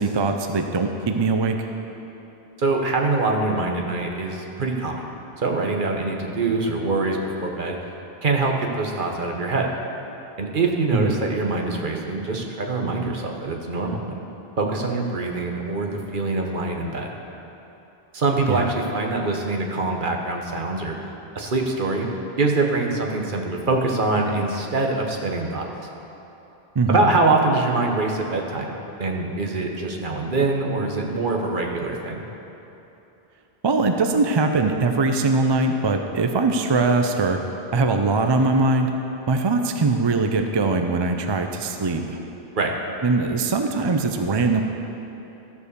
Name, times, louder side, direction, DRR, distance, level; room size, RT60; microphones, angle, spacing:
voice 1, 0.0-1.7 10.9-11.1 18.5-18.6 26.8-27.1 33.6-37.4 37.7-38.9 39.3-42.2 43.0-44.6, right 3 dB, 35° right, 5 dB, 0.4 m, -21 dB
voice 2, 2.6-5.1 5.4-7.8 8.2-9.7 10.4-14.2 14.6-17.1 18.1-21.1 21.3-22.1 22.4-25.7 26.9-32.3 42.6-42.7, right 3 dB, 55° right, 1 dB, 1.2 m, -24 dB
14.0 x 4.8 x 6.7 m, 3.0 s
omnidirectional pair, 1.0 m